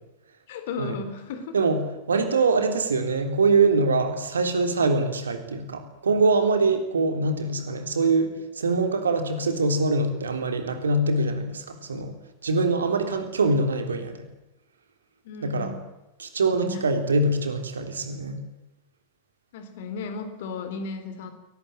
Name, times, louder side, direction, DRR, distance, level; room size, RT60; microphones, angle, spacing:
voice 1, 0.5-1.6 12.9-13.1 15.2-15.8 16.4-16.9 19.5-21.3, left 4 dB, 55° left, 9 dB, 3.7 m, -35 dB
voice 2, 2.1-8.3 8.5-12.1 12.4-14.2 15.4-15.7 16.2-18.4, right 3 dB, 70° right, 7 dB, 3.4 m, -23 dB
22.5 x 19.0 x 9.1 m, 0.98 s
figure-of-eight pair, 90°, 0 cm